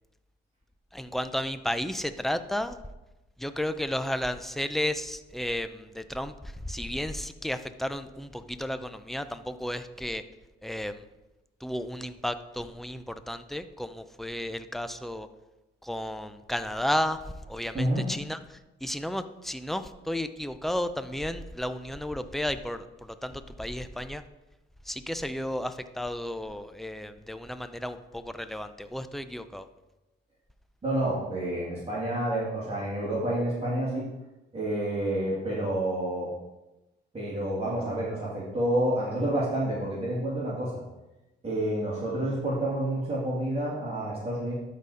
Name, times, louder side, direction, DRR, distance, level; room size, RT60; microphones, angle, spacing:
voice 1, 0.9-2.8 3.4-10.2 10.6-11.1 11.6-15.3 15.8-17.2 17.5-24.2 24.8-29.7, left 1 dB, ahead, 10 dB, 0.5 m, -33 dB
voice 2, 30.8-34.1 34.5-36.3 37.1-40.8 41.4-44.5, right 1 dB, 30° right, -7 dB, 2.7 m, -29 dB
12.0 x 4.3 x 5.0 m, 1.0 s
cardioid pair, 90°, 20 cm